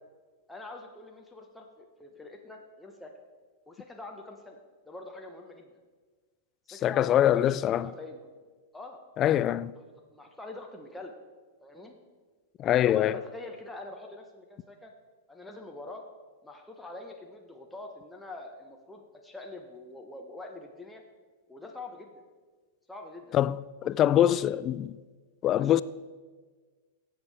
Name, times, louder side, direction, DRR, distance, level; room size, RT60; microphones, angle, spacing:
voice 1, 0.5-3.1 3.7-4.6 4.9-5.7 6.7-8.3 8.7-9.0 10.1-11.1 11.6-11.9 12.7-14.9 15.3-16.0 16.4-21.0 21.5-22.2 22.9-23.3 23.8-24.5 25.5-25.7, left 2 dB, 5° left, 1.0 m, -44 dB
voice 2, 6.7-7.9 9.2-9.7 12.6-13.2 23.3-25.0 25.4-25.8, left 11 dB, 35° left, 0.3 m, -24 dB
17.0 x 7.4 x 3.5 m
hypercardioid pair, 100°, 0 cm